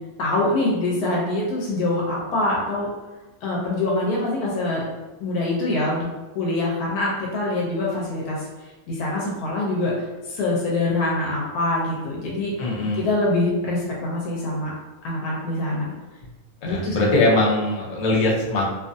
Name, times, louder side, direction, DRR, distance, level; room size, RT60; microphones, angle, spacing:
voice 1, 0.2-2.9 3.4-4.8 5.2-6.1 6.3-8.5 8.9-9.9 10.3-12.5 12.9-14.7 15.0-15.9 16.6-17.0, left 2 dB, 85° left, -4 dB, 1.1 m, -24 dB
voice 2, 12.6-13.0 16.6-18.6, left 2 dB, 60° left, -5 dB, 0.4 m, -21 dB
2.6 x 2.4 x 2.5 m, 1.1 s
omnidirectional pair, 1.6 m